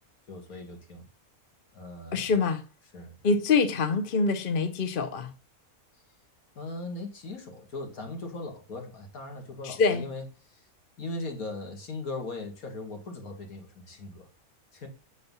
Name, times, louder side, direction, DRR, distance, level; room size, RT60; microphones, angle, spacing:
voice 1, 0.3-1.1 1.7-2.3 2.9-3.1 6.6-10.7 11.0-14.3 14.7-14.9, left 2 dB, 70° left, 2.1 m, -39 dB
voice 2, 2.1-2.6 3.2-5.3 9.6-10.1, left 4 dB, 45° left, 0.8 m, -25 dB
6.7 x 4.2 x 5.3 m
omnidirectional pair, 1.6 m